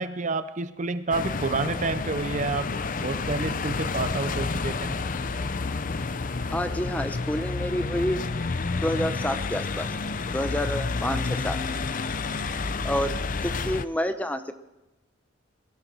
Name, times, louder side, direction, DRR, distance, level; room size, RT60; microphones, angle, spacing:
voice 1, 0.0-4.9, right 3 dB, 35° right, 12 dB, 0.6 m, -29 dB
sound 1, 1.1-13.9, left 4 dB, 40° left, 0.6 m, -30 dB
voice 2, 6.5-8.2 8.8-9.9 10.3-11.6 12.8-13.2 13.4-14.5, equal, 10° left, 9 dB, 0.7 m, -28 dB
22.0 x 13.0 x 4.6 m, 0.97 s
head